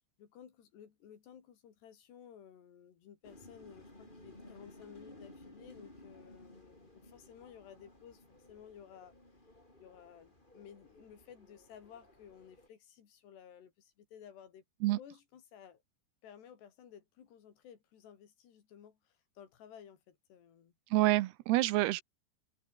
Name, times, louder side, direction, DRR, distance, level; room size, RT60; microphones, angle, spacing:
voice 1, 0.2-9.1 9.8-14.6 15.0-15.8 16.2-20.7, left 8 dB, 75° left, 5.1 m, -55 dB
sound 1, 3.2-12.7, left 1 dB, 10° left, 5.0 m, -57 dB
voice 2, 20.9-22.0, right 17 dB, 80° right, 2.7 m, -27 dB
omnidirectional pair, 4.9 m